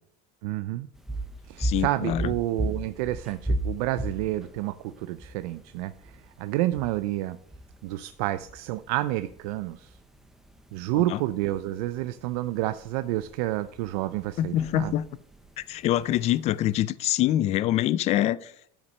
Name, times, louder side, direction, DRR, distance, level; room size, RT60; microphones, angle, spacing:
voice 1, 0.4-0.9 1.5-7.4 7.8-10.0 10.7-14.9, right 15 dB, 75° right, 0.5 m, -29 dB
sound 1, 0.9-16.8, right 1 dB, ahead, 0.7 m, -37 dB
voice 2, 1.6-2.3 10.9-11.2 14.4-15.1 15.6-18.7, left 13 dB, 35° left, 0.4 m, -25 dB
12.0 x 5.9 x 5.4 m
cardioid pair, 160°, 20 cm